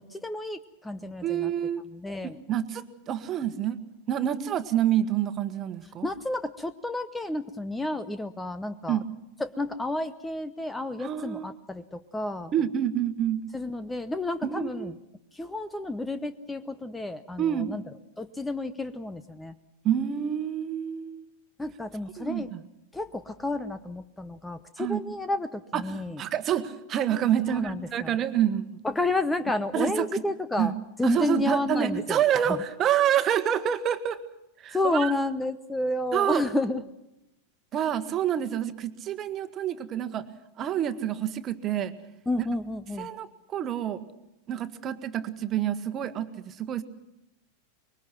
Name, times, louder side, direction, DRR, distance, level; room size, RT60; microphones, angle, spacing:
voice 1, 0.0-1.5 1.9-2.4 6.0-9.0 9.4-12.5 13.5-14.9 15.3-17.8 18.2-19.5 21.6-22.5 22.9-26.2 27.5-28.2 28.8-30.7 31.0-32.2 32.5-32.6 34.7-36.8 42.3-43.1, left 2 dB, 10° left, 13 dB, 0.9 m, -31 dB
voice 2, 1.2-1.8 2.5-3.8 4.1-6.1 8.9-9.0 11.0-11.5 12.5-13.4 14.4-14.9 17.4-17.7 19.8-21.2 22.2-22.6 24.8-25.0 25.7-28.8 29.7-30.2 30.6-30.7 31.0-34.2 34.6-35.1 36.1-36.5 37.7-40.3 40.6-41.9 43.0-44.0 44.5-46.8, right 10 dB, 30° right, 11 dB, 1.5 m, -27 dB
25.0 x 22.5 x 6.1 m, 0.87 s
figure-of-eight pair, 90°, 0 cm